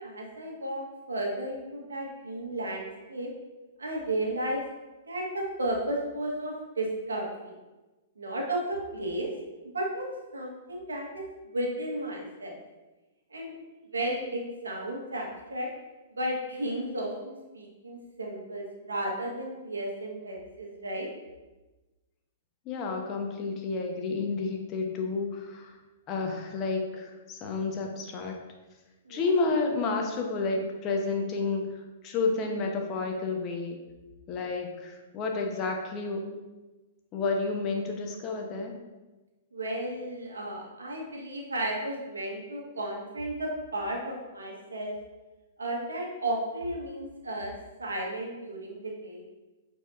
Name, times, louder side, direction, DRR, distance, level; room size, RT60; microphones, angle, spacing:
voice 1, 0.0-3.3 3.8-4.6 5.1-7.5 8.2-9.3 9.7-10.1 10.3-12.6 13.3-13.5 13.9-15.7 16.1-21.1 29.0-29.2 39.5-44.9 45.6-47.5 47.8-49.2, right 1 dB, 85° right, -1 dB, 1.6 m, -33 dB
voice 2, 22.6-25.7 26.1-28.4 29.1-31.7 32.0-33.8 34.3-36.2 37.1-38.7, left 3 dB, 35° left, 2 dB, 1.2 m, -30 dB
8.9 x 4.6 x 2.8 m, 1.1 s
hypercardioid pair, 120°, 0 cm